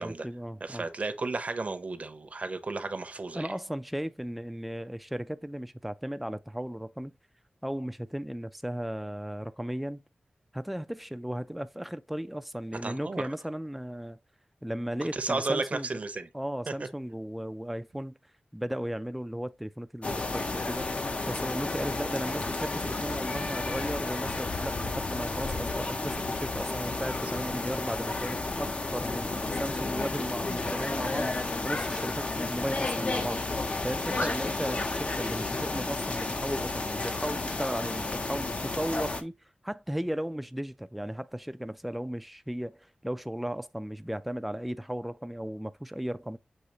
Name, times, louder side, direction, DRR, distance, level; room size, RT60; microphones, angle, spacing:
voice 1, 0.0-0.8 3.3-7.1 7.6-10.0 10.5-14.2 14.6-15.9 16.3-18.2 18.5-20.9 21.3-33.5 33.8-39.3 39.6-46.4, equal, ahead, 0.3 m, -36 dB
voice 2, 0.6-3.5 12.8-13.2 15.1-16.3 16.7-16.9 34.1-34.3, right 3 dB, 50° right, 0.7 m, -33 dB
sound 1, 20.0-39.2, left 3 dB, 45° left, 0.6 m, -32 dB
6.5 x 2.8 x 2.9 m
wide cardioid pair, 95°, 3 cm